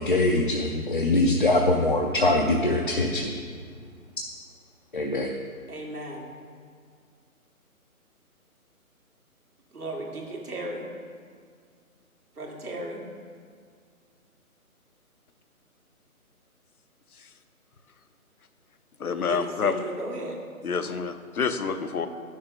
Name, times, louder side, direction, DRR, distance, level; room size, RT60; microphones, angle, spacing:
voice 1, 0.0-3.3 4.9-5.3, left 2 dB, 35° left, 2 dB, 0.5 m, -23 dB
voice 2, 5.7-6.3 9.7-10.8 12.4-13.0 19.4-20.4, right 1 dB, 80° right, -1 dB, 1.9 m, -35 dB
voice 3, 19.0-19.8 20.6-22.1, left 5 dB, 75° left, 10 dB, 0.8 m, -28 dB
10.0 x 6.5 x 3.7 m, 2.1 s
figure-of-eight pair, 150°, 44 cm